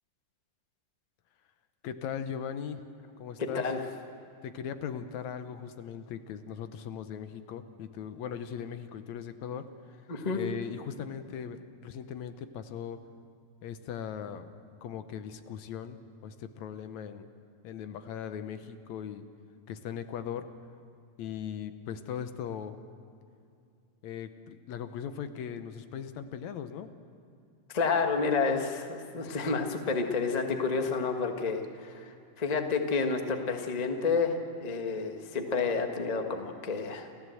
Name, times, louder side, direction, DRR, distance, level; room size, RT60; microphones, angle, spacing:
voice 1, 1.8-2.8 3.2-3.7 4.4-10.0 10.3-13.1 13.6-14.6 14.8-17.3 17.6-19.3 19.7-20.5 21.2-22.8 24.0-26.9, left 8 dB, 75° left, 10 dB, 2.1 m, -39 dB
voice 2, 3.4-3.8 10.1-10.4 27.7-37.1, left 4 dB, 35° left, 4 dB, 0.6 m, -30 dB
29.5 x 14.0 x 7.8 m, 2.5 s
omnidirectional pair, 3.4 m